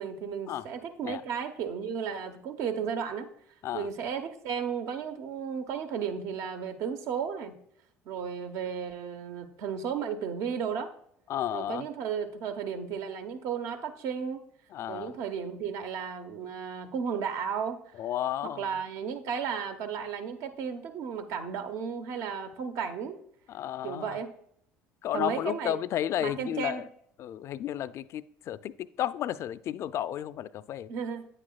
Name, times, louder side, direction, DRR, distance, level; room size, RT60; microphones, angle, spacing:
voice 1, 0.0-3.3 3.7-7.5 8.1-10.9 11.5-14.4 14.9-17.8 18.6-23.2 23.8-24.3 25.1-25.8 26.2-26.8 30.9-31.3, right 7 dB, 65° right, 8 dB, 1.0 m, -34 dB
voice 2, 11.3-11.9 14.7-15.2 18.0-18.7 23.5-24.2 25.0-26.9 27.2-28.7 29.0-30.9, left 11 dB, 55° left, 16 dB, 0.4 m, -32 dB
9.2 x 8.8 x 2.4 m, 0.71 s
hypercardioid pair, 75°, 6 cm